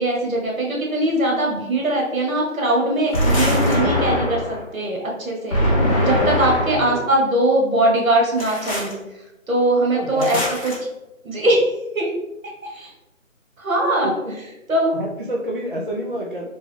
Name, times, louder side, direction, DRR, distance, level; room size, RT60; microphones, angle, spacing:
voice 1, 0.0-5.6 6.0-8.9 9.5-10.7 11.2-12.1 12.6-12.9 13.6-14.1 14.7-14.9, right 1 dB, 85° right, -1 dB, 1.4 m, -21 dB
sound 1, 3.1-4.6 5.5-7.0 8.4-8.9 10.2-10.7, left 1 dB, 25° left, 0.9 m, -21 dB
voice 2, 6.7-7.1 9.9-10.4 14.0-14.3 14.9-16.6, equal, 40° right, -3 dB, 0.5 m, -28 dB
3.7 x 2.4 x 3.3 m, 0.96 s
figure-of-eight pair, 175°, 40 cm